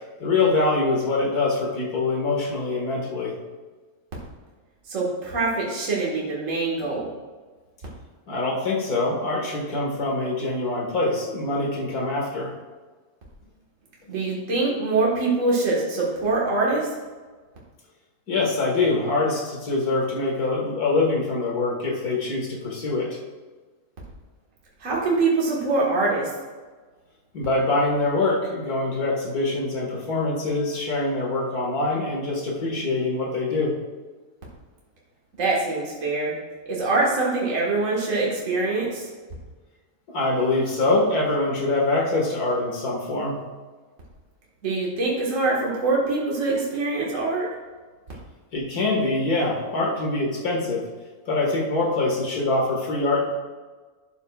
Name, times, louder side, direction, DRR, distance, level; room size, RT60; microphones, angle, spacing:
voice 1, 0.2-3.4 8.3-12.5 18.3-23.2 27.3-33.7 40.1-43.4 48.5-50.8 51.3-53.4, left 2 dB, 75° left, -2 dB, 2.3 m, -24 dB
voice 2, 4.9-7.1 14.1-16.9 24.8-26.3 35.4-36.4 36.7-39.1 44.6-47.5, right 3 dB, 55° right, -4 dB, 2.0 m, -24 dB
11.5 x 8.4 x 2.4 m, 1.4 s
omnidirectional pair, 1.6 m